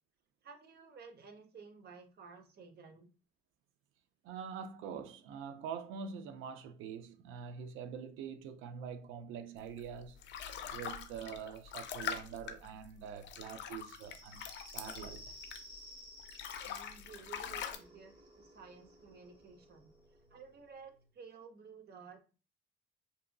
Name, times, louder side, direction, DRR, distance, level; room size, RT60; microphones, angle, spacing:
voice 1, 0.4-3.1 16.7-19.9 20.3-22.2, right 5 dB, 55° right, 0.7 m, -54 dB
voice 2, 4.2-10.2 10.7-14.4 14.7-15.3, right 7 dB, 90° right, 0.4 m, -45 dB
sound 1, 9.8-15.9 16.2-17.8, left 8 dB, 65° left, 0.4 m, -43 dB
sound 2, 13.8-21.0, equal, 25° right, 1.0 m, -56 dB
2.7 x 2.5 x 2.2 m
cardioid pair, 90°, 20 cm